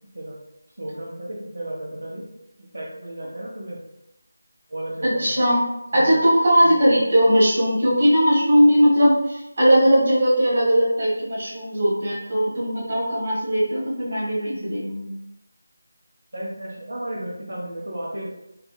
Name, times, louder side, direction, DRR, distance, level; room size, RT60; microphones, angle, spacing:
voice 1, 0.8-2.2 2.7-3.8 4.7-5.4 5.9-6.1 6.6-6.7 16.3-18.3, right 1 dB, 80° right, -4 dB, 0.8 m, -33 dB
voice 2, 5.0-5.6 5.9-15.1, equal, 40° right, -7 dB, 1.3 m, -19 dB
3.5 x 2.4 x 2.3 m, 0.87 s
figure-of-eight pair, 175°, 0 cm